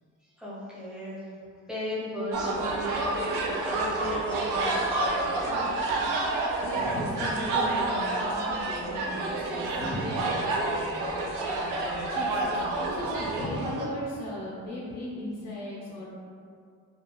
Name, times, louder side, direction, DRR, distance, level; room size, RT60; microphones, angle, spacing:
voice 1, 0.4-1.3 1.7-3.1 3.4-4.8 6.7-7.3 9.8-10.3 13.4-13.6, equal, ahead, -8 dB, 0.7 m, -35 dB
sound 1, 2.3-13.9, right 2 dB, 90° right, 0.5 m, -29 dB
voice 2, 5.4-11.1 11.6-16.1, left 1 dB, 80° left, -5 dB, 0.6 m, -38 dB
2.3 x 2.2 x 2.9 m, 2.2 s
cardioid pair, 90°, 30 cm